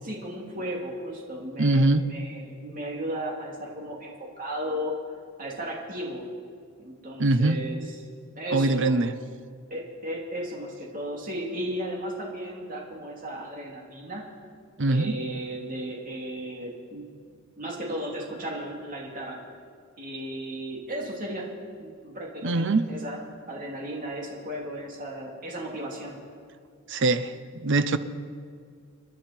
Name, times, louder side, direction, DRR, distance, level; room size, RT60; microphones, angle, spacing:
voice 1, 0.0-4.9 5.4-6.2 6.8-8.0 8.4-9.0 9.7-14.2 14.9-17.0 17.6-19.4 20.0-21.5 21.8-23.2 23.5-26.2, right 1 dB, 40° right, -2 dB, 2.9 m, -35 dB
voice 2, 1.6-2.0 7.2-7.6 8.5-9.1 14.8-15.2 22.4-22.8 26.9-28.0, right 2 dB, 55° right, 11 dB, 0.8 m, -22 dB
28.0 x 11.0 x 4.4 m, 2.2 s
head